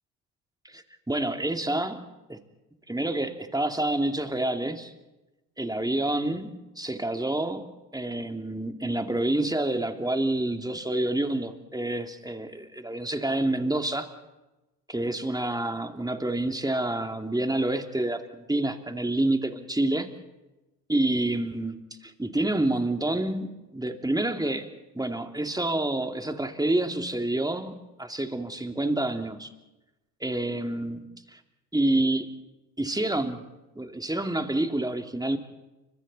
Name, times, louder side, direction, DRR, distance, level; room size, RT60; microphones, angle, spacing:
voice 1, 0.6-2.0 2.3-2.4 2.9-4.9 5.6-7.7 7.9-14.1 14.9-20.1 20.9-24.7 24.9-29.5 30.2-31.4 31.7-32.3 32.8-33.4 33.8-35.4, right 1 dB, 10° right, 6 dB, 2.5 m, -28 dB
29.5 x 25.5 x 4.1 m, 1.0 s
hypercardioid pair, 55°, 49 cm